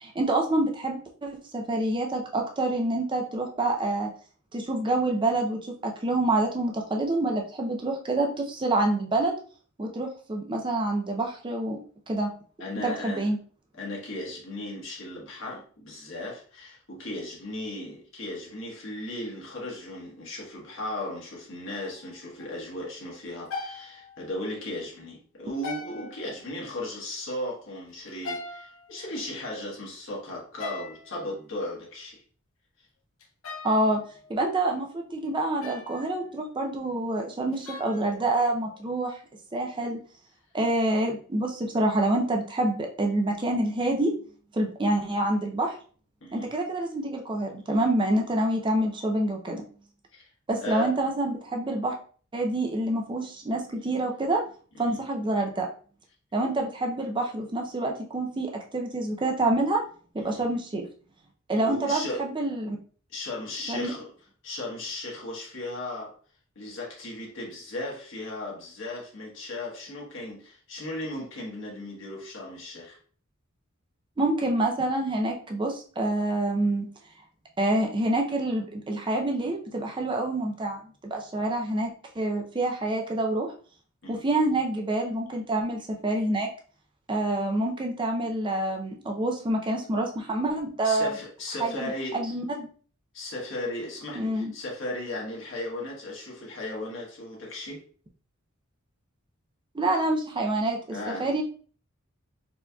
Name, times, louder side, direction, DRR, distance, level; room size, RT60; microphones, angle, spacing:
voice 1, 0.0-4.1 4.5-9.3 9.8-11.8 12.1-12.3 12.8-13.4 33.6-34.0 34.3-39.2 39.5-40.0 40.5-44.1 44.5-45.7 46.3-49.6 50.5-51.9 52.3-54.4 54.8-55.7 56.3-59.8 60.1-60.8 61.5-62.8 63.7-63.9 74.2-76.9 77.6-83.5 84.1-86.5 87.1-91.1 91.6-92.7 94.2-94.5 99.7-101.4, right 2 dB, 25° right, 0.5 m, -27 dB
voice 2, 12.6-13.3 13.7-32.2 46.2-46.5 50.1-50.3 50.6-50.9 54.7-55.0 60.2-60.4 61.6-62.3 63.1-64.1 64.4-66.1 66.5-73.0 84.0-84.2 90.8-92.2 93.1-97.8 100.9-101.3, left 1 dB, 65° left, 1.3 m, -36 dB
sound 1, 21.7-22.1 22.4-22.5 23.5-24.5 25.6-26.5 28.1-29.5 30.6-31.2 33.2-34.4 35.6-36.3 37.5-38.8, left 2 dB, 80° left, 0.7 m, -41 dB
4.3 x 2.8 x 2.2 m
head